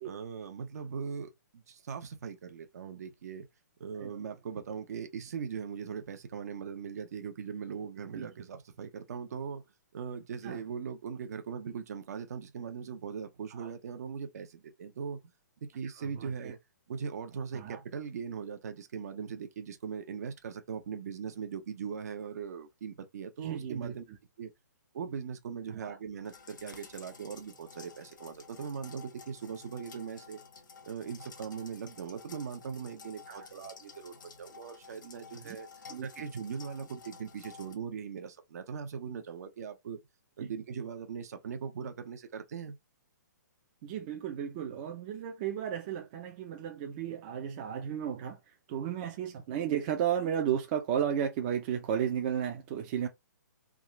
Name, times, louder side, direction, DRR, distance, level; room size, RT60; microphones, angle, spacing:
voice 1, 0.0-3.5 3.8-9.6 9.9-15.2 15.6-16.6 16.9-24.0 24.4-24.5 24.9-30.4 30.8-35.7 36.0-40.0 40.4-42.8, right 6 dB, 55° right, 0.8 m, -40 dB
voice 2, 16.0-16.5 17.5-17.8 23.4-23.9 25.7-26.0 33.3-33.5 35.5-35.6 35.9-36.1 40.4-40.5 43.8-48.4 48.7-53.1, right 9 dB, 25° right, 0.5 m, -34 dB
sound 1, 26.2-37.7, left 5 dB, 80° left, 1.1 m, -52 dB
3.6 x 2.4 x 3.0 m
hypercardioid pair, 160°, 10 cm